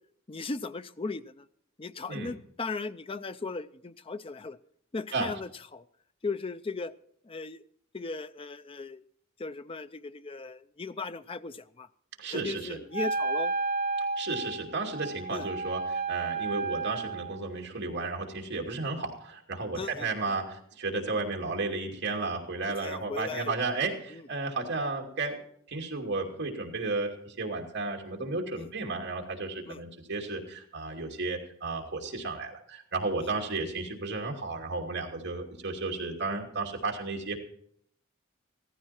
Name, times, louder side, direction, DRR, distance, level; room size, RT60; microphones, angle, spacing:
voice 1, 0.3-1.5 1.8-4.6 4.9-5.8 6.2-6.9 7.2-7.6 7.9-9.0 9.4-11.9 12.3-13.5 15.3-15.5 16.5-16.7 19.8-20.1 22.7-23.5 24.1-24.3 28.6-28.7 29.7-29.8 33.2-33.3, left 3 dB, 25° left, 13 dB, 0.5 m, -37 dB
voice 2, 12.2-12.8 14.2-25.4 25.7-37.4, right 3 dB, 55° right, 1 dB, 2.7 m, -33 dB
Wind instrument woodwind instrument, 12.9-17.5, right 4 dB, 40° right, 1.2 m, -32 dB
15.5 x 14.5 x 4.4 m, 0.66 s
head